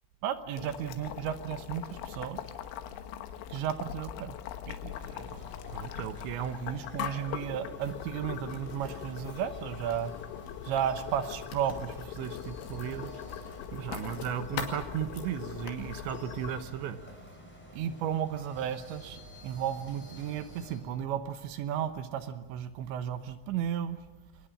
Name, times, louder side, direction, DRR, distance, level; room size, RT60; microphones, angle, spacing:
voice 1, 0.2-2.4 3.5-4.4 4.7-5.4 5.7-10.1 10.6-13.1 13.7-17.0 17.7-24.0, right 9 dB, 75° right, 10 dB, 3.0 m, -34 dB
Boiling, 0.6-16.6, left 11 dB, 85° left, 3.9 m, -42 dB
sound 1, 4.9-20.8, equal, ahead, 5.6 m, -51 dB
Writing, 7.8-15.7, left 6 dB, 65° left, 4.4 m, -45 dB
24.5 x 20.0 x 8.9 m, 1.0 s
omnidirectional pair, 6.0 m